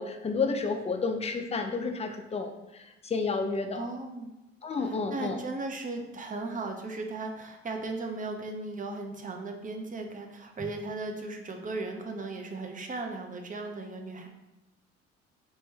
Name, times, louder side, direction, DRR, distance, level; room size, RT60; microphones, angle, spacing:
voice 1, 0.0-2.5 3.0-3.8 4.6-5.4, left 4 dB, 20° left, 5 dB, 0.5 m, -30 dB
voice 2, 3.7-4.3 4.8-14.3, right 3 dB, 25° right, 4 dB, 0.6 m, -37 dB
3.0 x 3.0 x 3.3 m, 1.0 s
hypercardioid pair, 50°, 33 cm